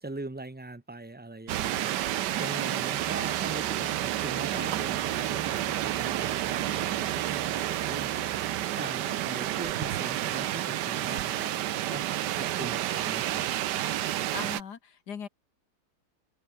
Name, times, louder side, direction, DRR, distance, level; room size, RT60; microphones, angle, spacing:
voice 1, 0.0-12.0 12.3-13.5, right 2 dB, 10° right, 0.5 m, -41 dB
sound 1, 1.5-14.6, right 13 dB, 80° right, 1.4 m, -30 dB
sound 2, 2.9-8.9, right 4 dB, 35° right, 1.9 m, -47 dB
voice 2, 14.3-15.3, left 7 dB, 70° left, 2.2 m, -39 dB
open air
omnidirectional pair, 1.8 m